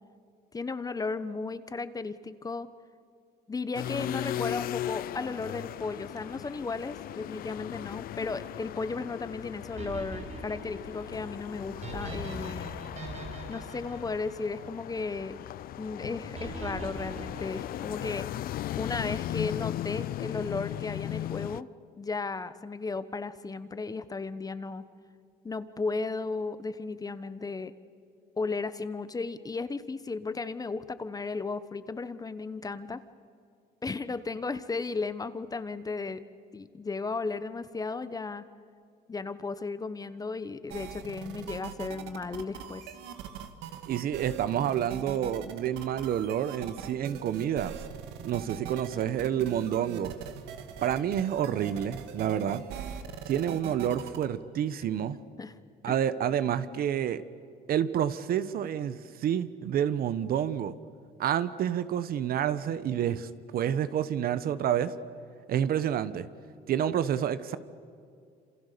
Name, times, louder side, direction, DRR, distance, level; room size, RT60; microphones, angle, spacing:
voice 1, 0.5-2.7 3.5-12.7 13.5-15.4 15.8-21.7 22.0-24.8 25.4-27.7 28.4-33.0 33.8-36.2 36.5-38.4 39.1-42.8 55.4-55.5 55.9-56.0, left 4 dB, 20° left, 13 dB, 1.1 m, -35 dB
sound 1, 3.7-21.6, left 13 dB, 60° left, 0.5 m, -37 dB
sound 2, 9.8-15.1 16.4-18.3, right 3 dB, 45° right, 6.6 m, -42 dB
sound 3, 40.7-54.2, right 8 dB, 90° right, 2.0 m, -41 dB
voice 2, 43.9-47.8 48.2-50.1 50.8-52.6 53.3-55.2 55.8-57.2 57.7-60.7 61.2-64.9 65.5-66.3 66.7-67.6, right 10 dB, 60° right, 14 dB, 1.2 m, -29 dB
27.5 x 27.0 x 6.9 m, 2.4 s
cardioid pair, 110°, 17 cm